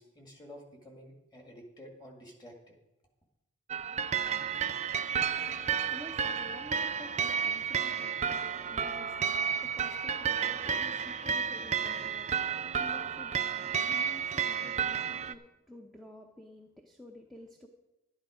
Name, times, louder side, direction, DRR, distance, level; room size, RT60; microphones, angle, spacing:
voice 1, 0.0-2.8, equal, 20° left, 1 dB, 1.9 m, -51 dB
sound 1, 3.7-15.3, right 7 dB, 30° right, 0.4 m, -32 dB
voice 2, 5.4-17.7, left 1 dB, ahead, 2 dB, 0.7 m, -51 dB
12.0 x 10.0 x 5.0 m, 0.97 s
head